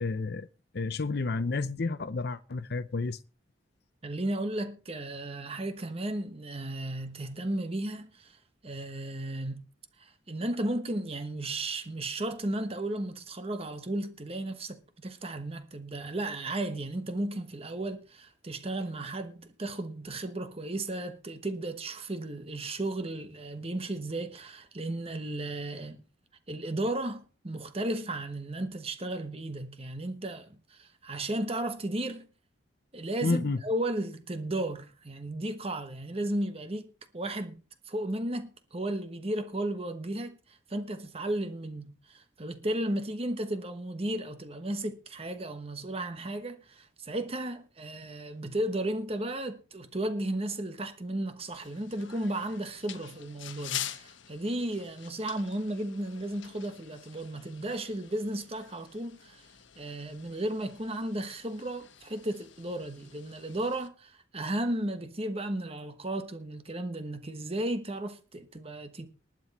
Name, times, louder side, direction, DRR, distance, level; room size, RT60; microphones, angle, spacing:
voice 1, 0.0-0.5 0.7-3.2 33.2-33.6, left 3 dB, 55° left, 0.6 m, -30 dB
voice 2, 4.0-9.7 10.0-26.0 26.5-32.3 32.9-37.6 37.8-59.5 59.8-69.1, right 1 dB, 30° right, 1.2 m, -34 dB
sound 1, 51.4-63.9, left 11 dB, 85° left, 1.2 m, -46 dB
20.0 x 7.7 x 4.2 m
head